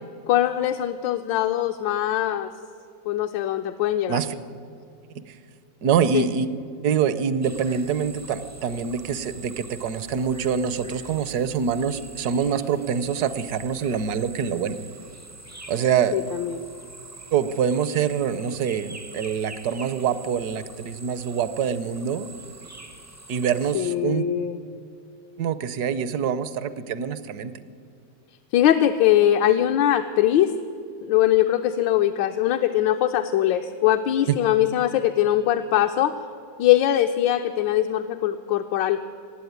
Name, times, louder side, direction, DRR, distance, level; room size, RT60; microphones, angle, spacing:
voice 1, 0.3-2.5 3.1-4.2 6.1-6.3 16.1-16.6 23.7-24.6 28.5-30.5 31.0-36.1 36.6-39.0, left 12 dB, 85° left, 6 dB, 1.3 m, -21 dB
voice 2, 5.8-6.5 6.8-14.8 15.7-16.2 17.3-22.3 23.3-24.3 25.4-27.5 34.3-34.4, right 7 dB, 65° right, 14 dB, 1.1 m, -25 dB
sound 1, 7.4-23.8, right 2 dB, 25° right, 0.3 m, -44 dB
17.0 x 8.4 x 9.4 m, 2.4 s
omnidirectional pair, 2.0 m